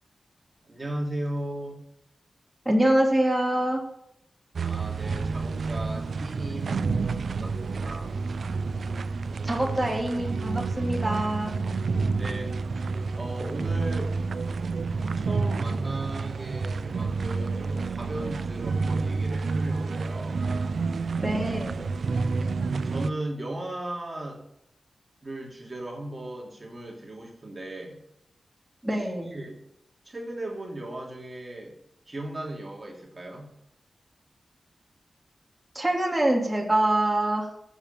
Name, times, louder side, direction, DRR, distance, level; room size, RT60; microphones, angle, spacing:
voice 1, 0.6-1.8 4.6-7.0 7.3-8.2 12.2-12.5 13.2-14.1 15.2-20.5 21.2-21.5 22.8-24.4 25.2-28.0 28.9-29.6 30.0-31.8 32.1-33.5, right 1 dB, 30° right, 0 dB, 2.8 m, -37 dB
voice 2, 2.6-3.8 9.4-11.5 21.2-21.8 28.8-29.3 35.7-37.5, right 1 dB, 10° right, -1 dB, 2.8 m, -25 dB
sound 1, 4.5-23.1, right 4 dB, 75° right, 0.5 m, -29 dB
14.5 x 7.2 x 6.9 m, 0.78 s
wide cardioid pair, 95°, 0 cm